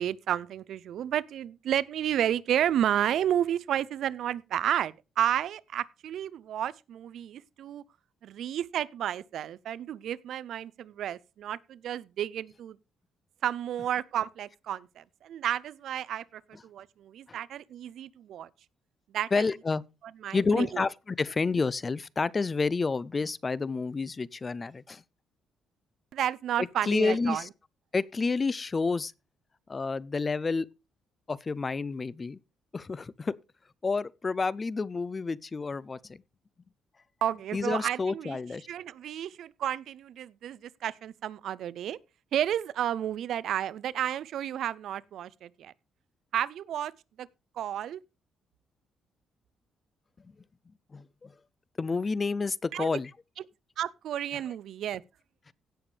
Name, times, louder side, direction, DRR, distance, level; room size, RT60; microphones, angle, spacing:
voice 1, 0.0-7.8 8.2-12.8 13.4-18.5 19.1-19.4 20.2-20.8 26.1-27.4 37.2-38.4 38.7-42.0 42.3-45.7 46.3-46.9 47.2-47.3 47.6-48.0 52.7-52.9 53.8-55.0, right 10 dB, 75° right, 0.5 m, -31 dB
voice 2, 19.3-19.8 20.3-25.0 26.6-27.5 27.9-29.1 29.7-30.7 31.3-32.4 32.7-33.4 33.8-36.2 37.5-38.7 50.2-50.3 50.9-51.3 51.8-53.1 54.3-54.4, left 4 dB, 30° left, 0.5 m, -29 dB
17.0 x 6.8 x 3.3 m
cardioid pair, 90°, 0 cm